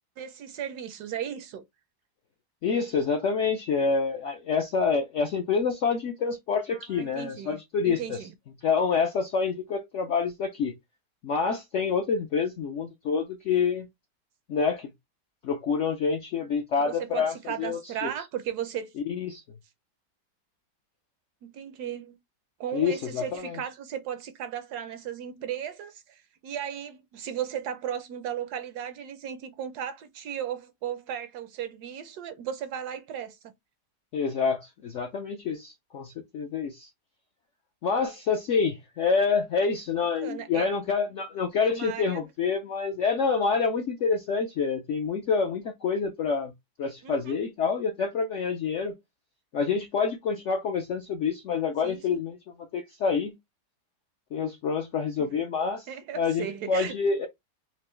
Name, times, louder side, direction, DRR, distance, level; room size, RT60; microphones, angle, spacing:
voice 1, 0.2-1.6 6.7-7.6 7.8-8.3 16.8-18.9 21.4-22.2 22.6-33.4 39.9-40.7 41.6-42.3 47.0-47.4 51.8-52.2 55.2-55.3 55.9-56.9, right 9 dB, 70° right, 1.0 m, -36 dB
voice 2, 2.6-8.2 8.6-10.7 11.2-13.9 14.5-14.9 15.4-18.1 19.0-19.4 22.7-23.6 34.1-36.9 37.8-46.5 46.8-49.0 49.5-52.4 52.7-53.4 54.3-55.9 56.1-57.3, left 5 dB, 65° left, 0.7 m, -27 dB
4.6 x 2.4 x 3.0 m
omnidirectional pair, 1.9 m